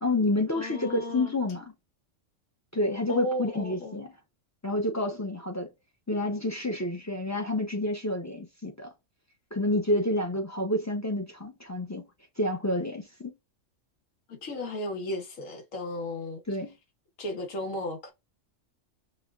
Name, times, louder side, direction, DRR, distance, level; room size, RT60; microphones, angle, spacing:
voice 1, 0.0-1.7 2.7-4.1 4.6-5.7 6.1-8.9 9.5-12.0 12.4-13.3 16.5-16.7, left 1 dB, 20° left, 0.4 m, -29 dB
voice 2, 0.5-1.3 3.1-4.0 14.3-16.4 17.2-18.1, left 1 dB, 90° left, 1.5 m, -34 dB
5.7 x 2.2 x 2.3 m
omnidirectional pair, 1.3 m